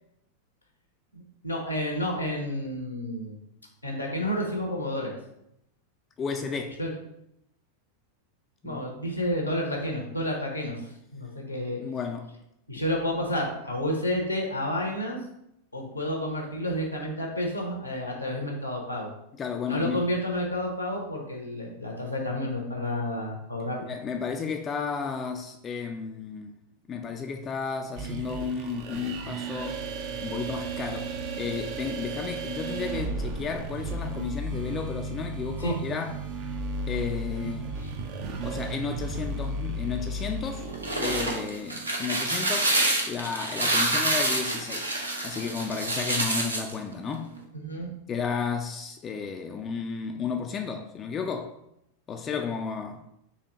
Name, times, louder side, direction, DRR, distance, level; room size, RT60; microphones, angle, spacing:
voice 1, 1.1-3.4 3.8-5.1 6.8-6.9 8.6-11.8 12.7-15.2 15.7-19.1 19.7-23.9 35.6-35.8 37.8-37.9 47.5-47.9, left 1 dB, 90° left, 0.8 m, -30 dB
voice 2, 6.2-6.8 8.6-8.9 11.8-12.3 19.3-20.1 23.8-26.5 26.9-29.8 30.2-36.3 36.9-37.7 38.4-40.7 40.9-42.7 43.1-47.4 48.1-51.5 52.1-53.1, left 6 dB, 25° left, 0.3 m, -33 dB
sound 1, 28.0-41.5, right 2 dB, 45° right, 0.6 m, -34 dB
sound 2, 40.6-46.7, right 2 dB, 80° right, 0.7 m, -27 dB
4.2 x 2.8 x 3.9 m
figure-of-eight pair, 90°, 0 cm